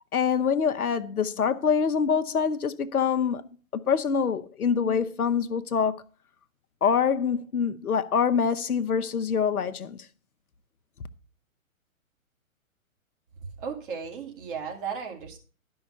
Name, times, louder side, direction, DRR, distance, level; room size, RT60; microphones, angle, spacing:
voice 1, 0.1-6.0 6.8-10.0, left 6 dB, 85° left, 0.9 m, -25 dB
voice 2, 13.6-15.4, right 6 dB, 35° right, 2.4 m, -35 dB
12.0 x 5.6 x 5.5 m
hypercardioid pair, 135°, 43 cm